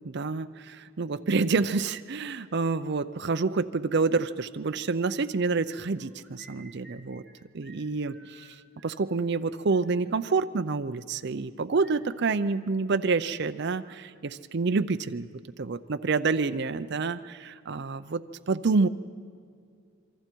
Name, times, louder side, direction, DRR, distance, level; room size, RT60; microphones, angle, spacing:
voice 1, 0.0-7.2 7.5-8.6 8.8-15.3 15.6-18.9, right 4 dB, 50° right, 9 dB, 0.5 m, -28 dB
sound 1, 6.0-7.3 7.6-7.8 8.1-9.0 9.3-9.4 9.7-10.0 11.7-13.1 13.4-14.2, right 3 dB, 5° left, 2.6 m, -56 dB
27.0 x 24.0 x 4.6 m, 2.2 s
head